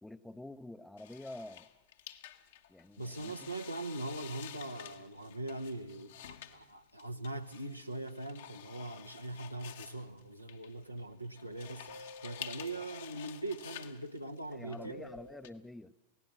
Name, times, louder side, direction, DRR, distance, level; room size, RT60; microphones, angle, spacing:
voice 1, 0.0-1.7 2.7-3.5 14.5-15.9, left 2 dB, 5° left, 14 dB, 0.6 m, -48 dB
sound 1, 1.0-15.5, left 10 dB, 60° left, 1.2 m, -50 dB
voice 2, 3.0-6.1 6.5-15.1, right 2 dB, 90° right, 6 dB, 1.1 m, -41 dB
sound 2, 11.9-13.0 14.8-15.5, left 2 dB, 85° left, 2.4 m, -51 dB
28.0 x 17.0 x 6.3 m, 1.0 s
figure-of-eight pair, 90°, 0 cm